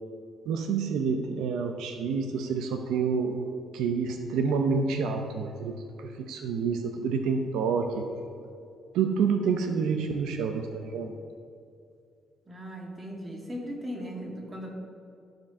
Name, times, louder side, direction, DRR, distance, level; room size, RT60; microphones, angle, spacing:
voice 1, 0.5-3.4 3.7-8.1 8.9-11.1, right 5 dB, 90° right, 5 dB, 0.7 m, -28 dB
voice 2, 12.5-14.7, equal, 25° right, 0 dB, 2.1 m, -38 dB
13.0 x 4.4 x 6.0 m, 2.4 s
cardioid pair, 90°, 0 cm